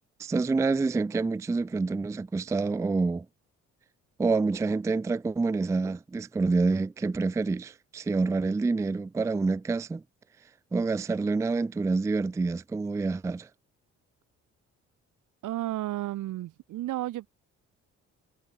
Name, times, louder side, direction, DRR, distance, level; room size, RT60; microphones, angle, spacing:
voice 1, 0.2-3.3 4.2-10.0 10.7-13.5, right 3 dB, 10° right, 0.3 m, -27 dB
voice 2, 15.4-17.3, right 15 dB, 85° right, 3.5 m, -32 dB
cardioid pair, 90°, 30 cm